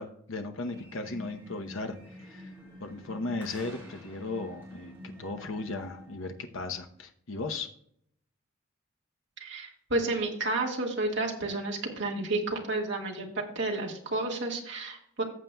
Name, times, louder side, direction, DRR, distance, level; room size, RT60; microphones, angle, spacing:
voice 1, 0.0-2.5 2.8-7.7, left 3 dB, 70° left, 5 dB, 0.7 m, -36 dB
sound 1, 0.6-6.4, equal, 10° right, 3.9 m, -48 dB
voice 2, 9.4-15.2, right 2 dB, 55° right, 0 dB, 1.6 m, -31 dB
14.5 x 7.4 x 2.2 m, 0.69 s
head